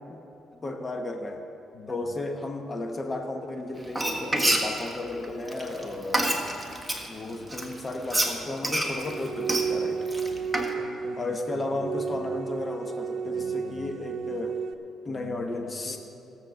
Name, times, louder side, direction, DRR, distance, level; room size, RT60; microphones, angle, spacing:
voice 1, 0.6-1.4 1.9-6.4 7.1-10.1 11.1-14.6 15.0-16.0, left 2 dB, 30° left, 4 dB, 1.0 m, -34 dB
Frying (food), 3.8-7.1 7.5-10.7, right 1 dB, 5° right, 1.6 m, -27 dB
voice 2, 7.2-7.5 10.2-11.9 12.1-12.4 13.2-14.4 15.0-16.0, left 5 dB, 65° left, 4 dB, 1.2 m, -45 dB
sound 1, 9.0-14.7, right 6 dB, 70° right, 0.5 m, -32 dB
17.0 x 7.5 x 6.3 m, 2.8 s
cardioid pair, 90°, 0 cm